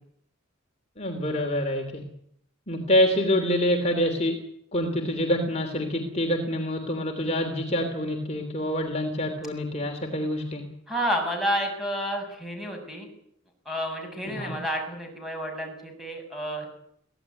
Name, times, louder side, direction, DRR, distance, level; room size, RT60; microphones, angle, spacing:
voice 1, 1.0-2.0 2.7-4.4 4.7-10.6 14.3-14.5, left 1 dB, 35° left, 3 dB, 3.2 m, -26 dB
voice 2, 10.9-13.1 13.7-16.7, equal, ahead, 2 dB, 7.5 m, -30 dB
24.0 x 17.0 x 9.8 m, 0.70 s
head